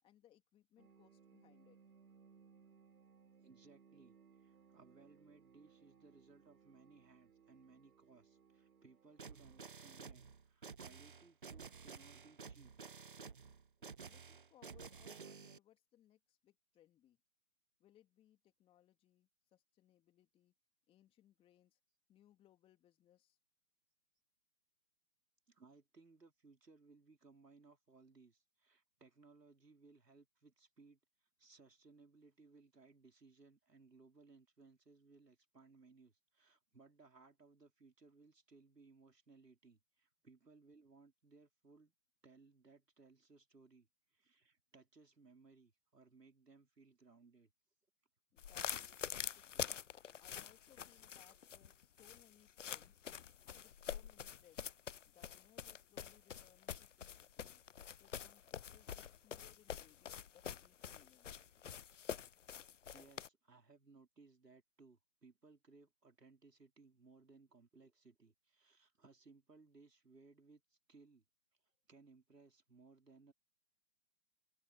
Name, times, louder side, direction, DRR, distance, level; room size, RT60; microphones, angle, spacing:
voice 1, 0.0-1.8 14.0-17.2 17.8-20.5 20.9-21.8 22.1-23.4 48.3-49.8 50.2-53.0 53.4-54.7 55.1-57.6 58.0-61.5, left 12 dB, 10° left, 3.4 m, -69 dB
sound 1, 0.8-9.6, right 6 dB, 65° right, 3.0 m, -66 dB
voice 2, 3.4-12.7 25.5-41.9 42.2-47.5 62.9-71.2 71.9-73.3, right 4 dB, 85° right, 5.0 m, -64 dB
sound 2, 9.2-15.6, right 5 dB, 35° right, 0.5 m, -53 dB
sound 3, 48.4-63.3, left 8 dB, 50° left, 0.6 m, -46 dB
figure-of-eight pair, 145°, 47 cm